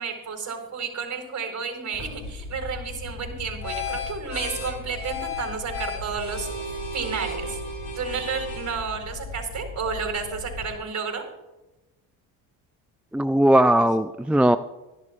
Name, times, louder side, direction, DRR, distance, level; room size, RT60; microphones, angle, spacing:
voice 1, 0.0-7.6 7.9-11.2, right 5 dB, 45° right, 4 dB, 4.4 m, -31 dB
sound 1, 1.9-10.8, left 2 dB, 70° left, 4.8 m, -35 dB
voice 2, 13.1-14.6, right 1 dB, 5° right, 11 dB, 0.3 m, -18 dB
25.5 x 11.0 x 2.5 m, 1.0 s
supercardioid pair, 70°, 41 cm